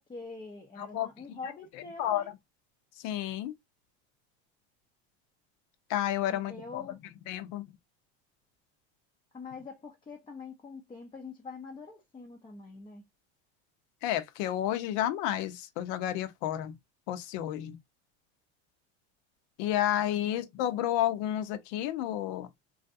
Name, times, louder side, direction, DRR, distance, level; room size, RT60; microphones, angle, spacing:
voice 1, 0.0-2.3 6.3-7.0 9.3-13.1 20.3-20.4, left 4 dB, 15° left, 0.6 m, -45 dB
voice 2, 0.8-1.4 1.7-2.2 3.0-3.5 5.9-7.0 7.3-7.7 14.0-16.7 17.1-17.8 19.6-22.5, left 12 dB, 65° left, 0.8 m, -31 dB
3.1 x 2.5 x 2.6 m
supercardioid pair, 125°, 33 cm